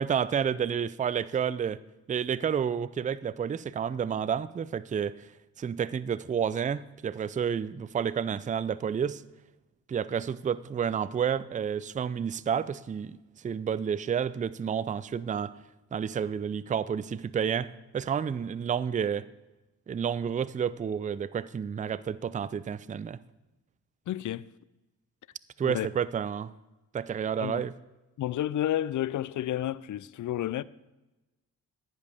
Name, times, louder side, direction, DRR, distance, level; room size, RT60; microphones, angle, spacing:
voice 1, 0.0-1.8 2.1-5.3 5.6-9.2 9.9-13.2 13.4-15.5 15.9-19.3 19.9-23.2 25.6-26.5 26.9-27.7, right 7 dB, 20° right, 0.4 m, -30 dB
voice 2, 24.1-24.5 25.6-25.9 27.4-27.6 28.2-30.6, left 12 dB, 45° left, 0.4 m, -31 dB
10.5 x 10.5 x 3.5 m
hypercardioid pair, 40°, 44 cm